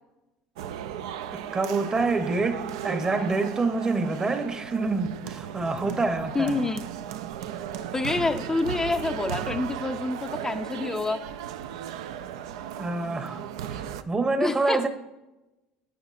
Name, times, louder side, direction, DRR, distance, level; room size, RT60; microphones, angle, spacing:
sound 1, 0.6-14.0, right 9 dB, 80° right, 0.4 m, -36 dB
voice 1, 1.3-6.6 12.8-14.9, right 3 dB, 25° right, 0.8 m, -27 dB
voice 2, 6.3-6.8 7.9-11.2 14.4-14.9, left 3 dB, 15° left, 0.4 m, -27 dB
9.4 x 8.3 x 2.5 m
hypercardioid pair, 80°, 3 cm